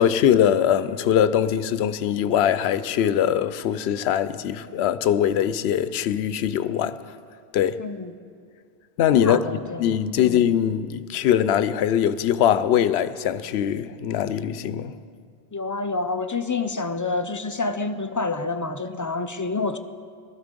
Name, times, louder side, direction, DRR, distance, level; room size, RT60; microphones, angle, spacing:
voice 1, 0.0-7.0 7.5-7.8 9.0-9.4 9.8-14.9, left 9 dB, 85° left, 0.8 m, -22 dB
voice 2, 7.8-8.1 9.1-10.4 15.5-19.8, left 3 dB, 30° left, 0.3 m, -28 dB
19.0 x 13.0 x 5.2 m
omnidirectional pair, 1.1 m